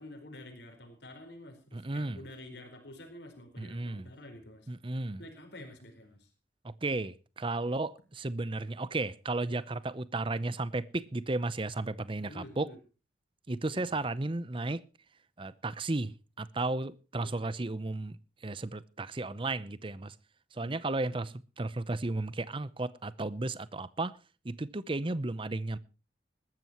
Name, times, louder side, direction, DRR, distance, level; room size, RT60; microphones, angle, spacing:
voice 1, 0.0-4.7 5.2-6.3 12.3-12.8 13.7-14.0 17.2-17.5 20.5-20.7 21.1-21.3, left 1 dB, 65° left, 4.6 m, -49 dB
voice 2, 1.7-2.2 3.6-4.1 4.7-5.2 6.6-12.7 13.5-14.8 15.4-18.2 18.4-20.1 20.6-24.2 24.4-25.8, right 2 dB, 30° right, 0.7 m, -34 dB
20.0 x 14.0 x 3.0 m
head